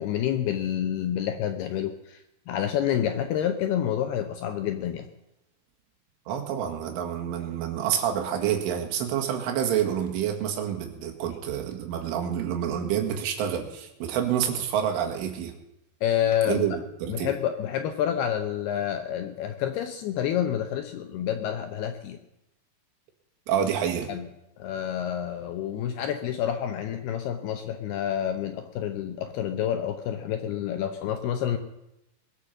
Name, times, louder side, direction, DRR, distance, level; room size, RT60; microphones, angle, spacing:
voice 1, 0.0-2.2 2.5-5.1 16.0-16.7 17.1-22.2 24.1-24.3 24.6-31.6, left 10 dB, 80° left, 7 dB, 2.4 m, -28 dB
voice 2, 6.3-15.5 16.5-16.7 17.0-17.3 23.5-24.1, right 9 dB, 90° right, 3 dB, 4.4 m, -28 dB
21.0 x 8.4 x 7.4 m, 0.87 s
omnidirectional pair, 5.5 m